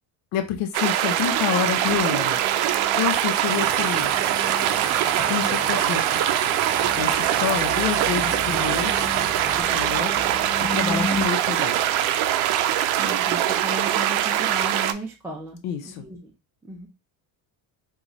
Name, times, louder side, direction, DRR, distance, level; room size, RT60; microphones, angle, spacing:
voice 1, 0.3-2.4 3.0-4.1 5.3-6.0 7.0-9.1 9.6-10.1 10.7-11.9 15.6-16.0, left 9 dB, 90° left, 6 dB, 0.7 m, -28 dB
sound 1, 0.7-14.9, right 11 dB, 85° right, 0.6 m, -23 dB
sound 2, 1.8-11.2, left 2 dB, 35° left, 0.9 m, -37 dB
sound 3, 3.4-9.6, right 4 dB, 35° right, 0.9 m, -34 dB
voice 2, 13.0-16.3 16.6-16.9, right 1 dB, 5° right, -1 dB, 0.3 m, -35 dB
3.9 x 2.4 x 3.0 m, 0.27 s
cardioid pair, 135°, 48 cm